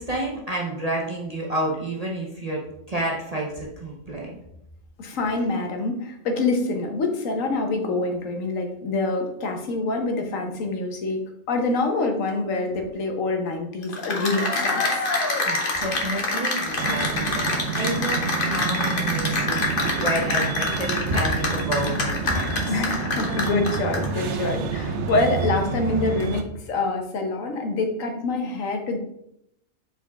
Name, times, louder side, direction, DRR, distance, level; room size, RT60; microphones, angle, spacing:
voice 1, 0.0-2.6 2.9-4.4 15.5-19.6 20.0-22.7, right 1 dB, 35° right, -3 dB, 0.9 m, -29 dB
voice 2, 5.0-11.2 11.5-15.0 22.7-29.0, left 3 dB, 90° left, 4 dB, 1.4 m, -26 dB
Cheering / Applause, 13.8-24.2, left 3 dB, 45° left, 1.2 m, -26 dB
sound 1, 16.8-26.4, right 5 dB, 65° right, 1.0 m, -29 dB
7.1 x 4.4 x 3.5 m, 0.80 s
omnidirectional pair, 1.3 m